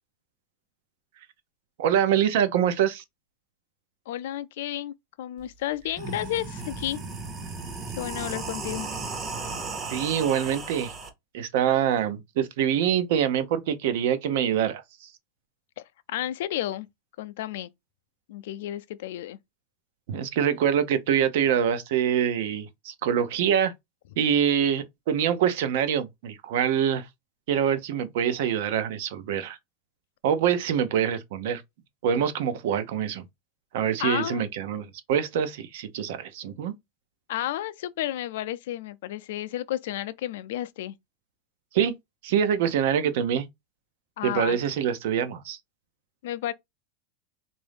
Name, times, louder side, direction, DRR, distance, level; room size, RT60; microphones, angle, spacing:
voice 1, 1.8-3.0 9.9-10.9 11.3-14.8 20.1-23.7 24.2-27.1 27.5-29.6 30.2-31.6 32.0-33.2 33.7-36.7 41.7-42.0 42.2-43.5 44.2-45.6, right 9 dB, 65° right, 0.7 m, -25 dB
voice 2, 4.1-7.0 8.0-8.9 15.8-16.9 17.2-17.7 18.3-19.4 34.0-34.5 37.3-41.0 44.2-44.6 46.2-46.5, left 13 dB, 75° left, 0.4 m, -32 dB
sound 1, 5.4-5.5 5.8-11.1, right 3 dB, 25° right, 0.7 m, -35 dB
3.6 x 2.6 x 3.4 m
supercardioid pair, 160°, 0 cm